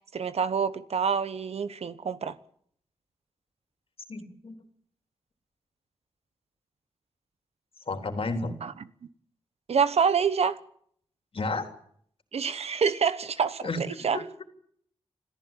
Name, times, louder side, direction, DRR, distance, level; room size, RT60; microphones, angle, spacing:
voice 1, 0.0-2.4 8.6-8.7 9.7-10.6 12.3-14.2, right 6 dB, 75° right, 1.1 m, -27 dB
voice 2, 4.1-4.6 7.9-8.6 11.3-11.7 13.6-13.8 14.1-14.2, left 3 dB, 60° left, 3.6 m, -31 dB
26.5 x 14.5 x 9.1 m
cardioid pair, 60°, 11 cm